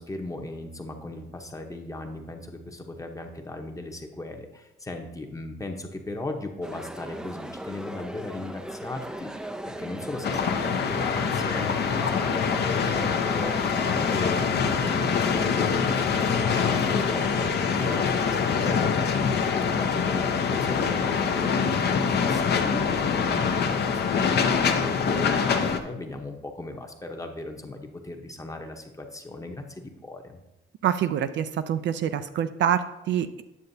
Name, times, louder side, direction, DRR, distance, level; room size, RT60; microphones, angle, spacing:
voice 1, 0.0-30.4, left 2 dB, 15° left, 3 dB, 0.9 m, -37 dB
sound 1, 6.6-18.8, right 1 dB, 5° right, 0.4 m, -38 dB
sound 2, 10.2-25.8, left 6 dB, 55° left, 0.7 m, -24 dB
voice 2, 30.8-33.4, right 9 dB, 65° right, 10 dB, 0.4 m, -26 dB
9.6 x 6.7 x 2.7 m, 0.97 s
cardioid pair, 90°, 20 cm